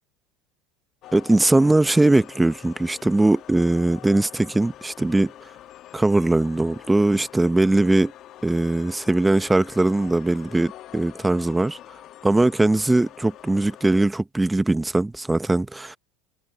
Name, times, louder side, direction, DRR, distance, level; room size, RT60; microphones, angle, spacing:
sound 1, 1.0-14.1, left 13 dB, 50° left, 1.2 m, -45 dB
voice 1, 1.1-5.3 5.9-8.1 8.4-11.8 12.2-16.0, right 2 dB, 10° right, 0.8 m, -20 dB
supercardioid pair, 120°, 0 cm